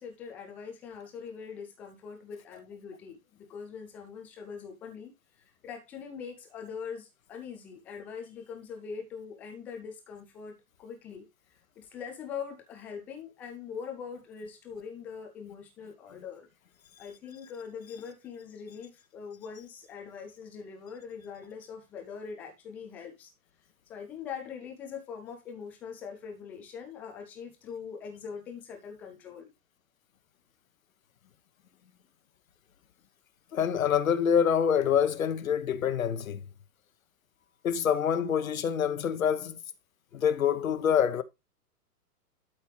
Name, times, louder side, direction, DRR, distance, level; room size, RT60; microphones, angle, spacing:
voice 1, 0.0-16.5 17.0-23.3 23.9-29.5 40.1-40.2, left 6 dB, 5° left, 0.4 m, -42 dB
voice 2, 33.5-36.4 37.6-39.6 40.1-41.2, left 8 dB, 60° left, 1.2 m, -26 dB
12.0 x 5.5 x 3.2 m
figure-of-eight pair, 110°, 45 cm